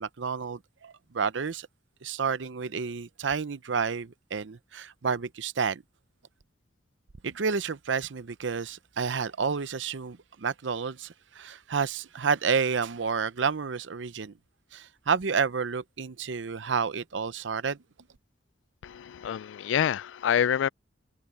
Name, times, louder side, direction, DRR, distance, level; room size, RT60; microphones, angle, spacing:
voice 1, 0.0-1.7 2.0-5.8 7.2-14.3 14.7-17.8, right 5 dB, 85° right, 0.7 m, -30 dB
voice 2, 18.8-20.7, left 9 dB, 90° left, 0.3 m, -27 dB
head